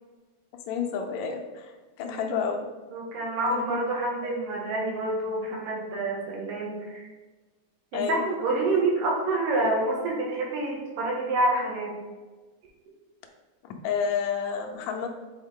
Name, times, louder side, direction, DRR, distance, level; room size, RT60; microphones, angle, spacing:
voice 1, 0.5-1.7 2.0-2.7 3.5-3.8 4.2-4.3 7.9-8.2 13.6-15.1, left 6 dB, 85° left, 2 dB, 1.5 m, -30 dB
voice 2, 2.0-2.4 2.9-7.1 7.9-11.9, right 2 dB, 75° right, -2 dB, 2.9 m, -28 dB
7.2 x 3.9 x 3.6 m, 1.3 s
omnidirectional pair, 4.0 m